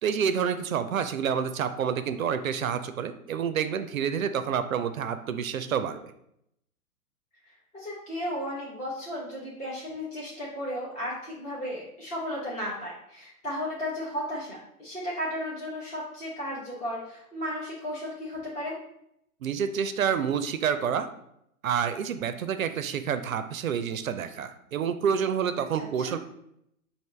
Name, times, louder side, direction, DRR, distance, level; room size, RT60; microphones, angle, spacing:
voice 1, 0.0-6.1 19.4-21.1 21.6-26.2, right 7 dB, 65° right, 10 dB, 0.5 m, -28 dB
voice 2, 7.7-18.8 25.7-26.2, equal, 15° left, -7 dB, 0.7 m, -34 dB
5.1 x 2.6 x 3.2 m, 0.76 s
figure-of-eight pair, 115°, 44 cm